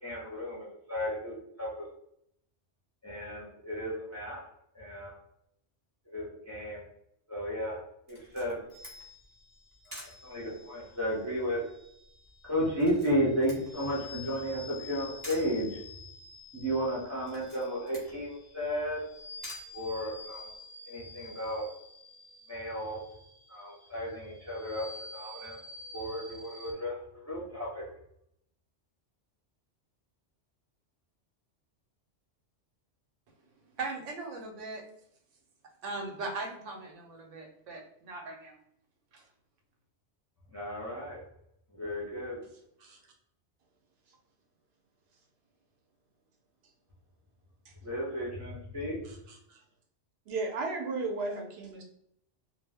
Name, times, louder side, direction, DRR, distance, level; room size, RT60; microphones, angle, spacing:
voice 1, 0.0-1.9 3.0-4.4 4.7-5.2 6.1-6.8 7.3-7.8 8.1-8.6 9.9-11.6 12.4-15.8 16.5-19.0 19.7-20.5 20.9-21.6 22.5-23.0 23.5-24.9 25.1-25.6 25.9-27.8 40.5-41.2 41.7-42.4 47.8-49.0, equal, 20° left, -5 dB, 0.4 m, -33 dB
Camera, 8.1-20.6, equal, 20° right, 0.9 m, -52 dB
sound 1, 8.7-26.7, left 3 dB, 60° left, 0.6 m, -50 dB
voice 2, 33.8-34.8 35.8-38.6 39.1-39.3, right 3 dB, 85° right, 3 dB, 1.0 m, -39 dB
voice 3, 49.0-49.6 50.3-51.8, right 3 dB, 65° right, 2 dB, 0.8 m, -35 dB
2.2 x 2.0 x 3.3 m, 0.73 s
omnidirectional pair, 1.2 m